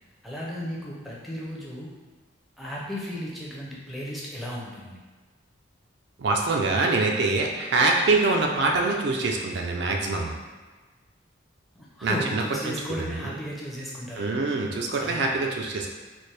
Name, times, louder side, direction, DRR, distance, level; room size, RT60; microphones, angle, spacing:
voice 1, 0.2-1.9 2.6-5.0 11.7-14.4 15.0-15.2, equal, ahead, -5 dB, 0.5 m, -35 dB
voice 2, 6.2-10.4 12.0-12.7 13.2-13.3 14.2-15.9, right 3 dB, 55° right, 1 dB, 0.4 m, -24 dB
4.2 x 2.1 x 3.2 m, 1.3 s
head